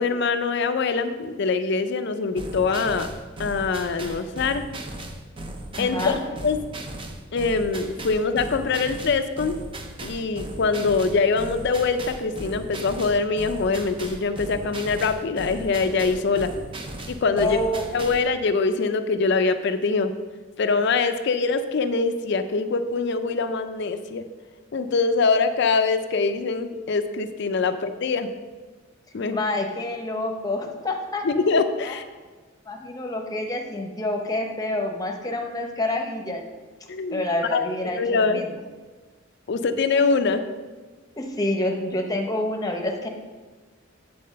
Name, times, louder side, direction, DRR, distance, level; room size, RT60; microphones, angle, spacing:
voice 1, 0.0-3.1 3.4-4.6 5.8-6.2 6.4-6.6 7.3-9.6 10.0-16.5 17.1-17.6 17.9-20.1 20.6-24.2 24.7-28.3 29.1-29.4 31.2-32.0 36.9-37.2 37.5-37.6 38.0-38.4 39.5-40.4, left 4 dB, 60° left, 9 dB, 0.5 m, -23 dB
sound 1, 2.4-18.3, right 1 dB, 25° right, 0.6 m, -37 dB
voice 2, 5.8-6.1 17.4-18.1 29.3-31.2 31.8-31.9 32.7-36.4 37.1-38.6 41.2-43.1, left 1 dB, 20° left, 3 dB, 0.9 m, -27 dB
8.6 x 4.2 x 6.5 m, 1.3 s
head